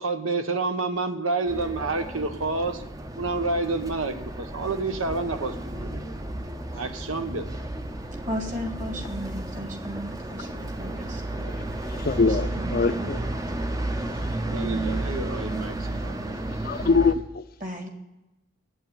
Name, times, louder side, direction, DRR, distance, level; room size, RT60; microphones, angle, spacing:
voice 1, 0.0-2.8 3.2-6.1 6.7-7.4 14.4-16.3, right 3 dB, 90° right, 1.1 m, -29 dB
sound 1, 1.5-17.1, right 1 dB, 15° right, 0.6 m, -32 dB
voice 2, 8.2-11.2 12.5-12.7 13.0-13.1 17.6-17.9, equal, 40° right, 1.9 m, -35 dB
voice 3, 11.8-13.2 14.1-14.4 16.5-17.4, left 4 dB, 45° left, 0.5 m, -24 dB
8.5 x 8.3 x 7.2 m
head